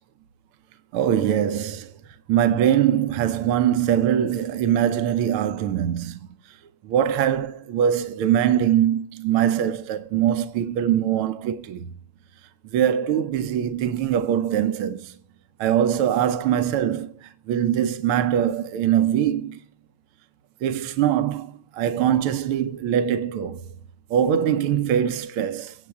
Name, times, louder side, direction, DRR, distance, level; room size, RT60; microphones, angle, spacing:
voice 1, 0.9-1.9 2.3-6.6 6.8-11.9 12.7-15.2 15.6-19.6 20.6-23.6 24.1-25.9, right 10 dB, 80° right, 1.7 m, -22 dB
23.5 x 8.2 x 3.5 m
omnidirectional pair, 2.4 m